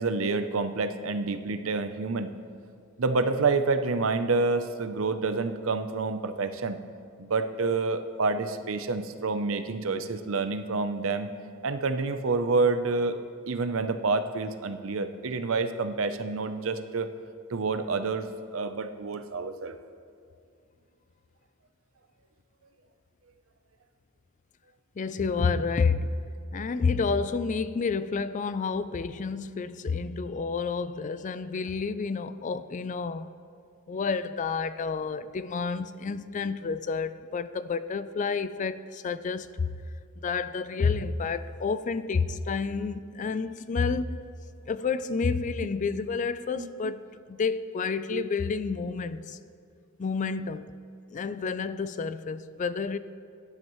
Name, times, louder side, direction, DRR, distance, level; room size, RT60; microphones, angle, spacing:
voice 1, 0.0-2.3 3.0-6.8 7.2-11.3 11.6-13.2 13.5-17.1 17.5-19.7 46.5-46.7 48.1-48.3, right 3 dB, 65° right, 0.6 m, -28 dB
voice 2, 25.0-26.1 26.5-33.3 33.9-39.8 40.2-44.3 44.7-47.0 47.3-49.4 50.0-50.6 51.1-53.0, left 5 dB, 35° left, 0.3 m, -29 dB
17.0 x 10.5 x 3.1 m
head